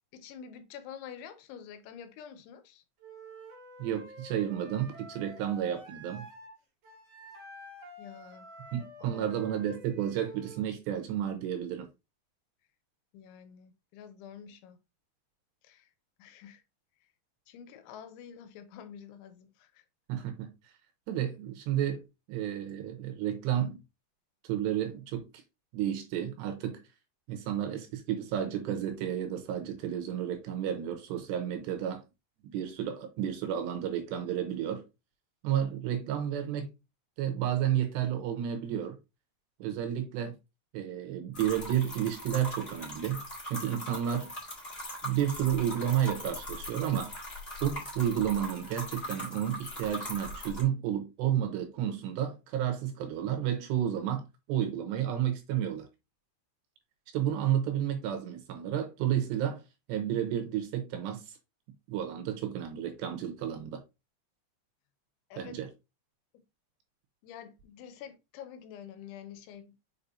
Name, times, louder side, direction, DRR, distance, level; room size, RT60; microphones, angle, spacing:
voice 1, 0.1-2.8 8.0-8.5 9.1-9.4 13.1-14.8 15.6-15.9 16.2-16.6 17.5-19.8 65.3-65.6 66.3-66.4 67.2-69.8, left 8 dB, 85° left, 3.1 m, -48 dB
Wind instrument woodwind instrument, 3.0-6.5 6.8-10.6, equal, 60° right, 1.7 m, -49 dB
voice 2, 3.8-6.3 8.7-11.9 20.1-20.5 21.1-22.0 22.3-23.8 24.4-25.3 25.7-26.8 27.3-32.0 32.5-34.8 35.4-36.7 37.2-39.0 39.6-40.3 40.7-44.3 45.0-47.1 47.6-55.9 57.1-59.6 59.9-61.4 61.9-63.8 65.4-65.7, right 10 dB, 75° right, 2.9 m, -31 dB
sound 1, 41.3-50.6, left 1 dB, 20° left, 1.7 m, -40 dB
6.8 x 5.4 x 2.7 m
omnidirectional pair, 5.4 m